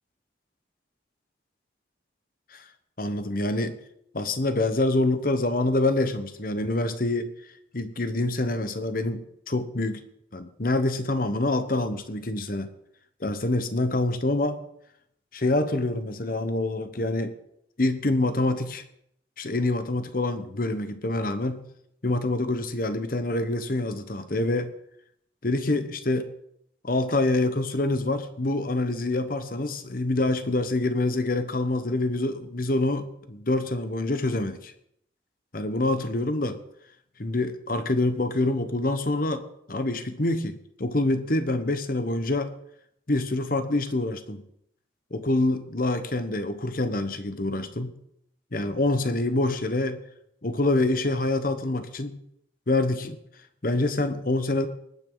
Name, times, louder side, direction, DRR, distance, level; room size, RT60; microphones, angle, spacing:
voice 1, 3.0-3.8 4.1-7.3 7.7-10.0 10.3-12.7 13.2-14.6 15.3-17.3 17.8-18.8 19.4-21.6 22.0-24.7 25.4-26.3 26.8-34.7 35.5-36.6 37.2-42.5 43.1-44.4 45.1-48.0 48.5-50.0 50.4-52.2 52.7-53.2 53.6-54.7, left 2 dB, 50° left, 10 dB, 1.1 m, -26 dB
20.0 x 9.3 x 4.0 m, 0.73 s
head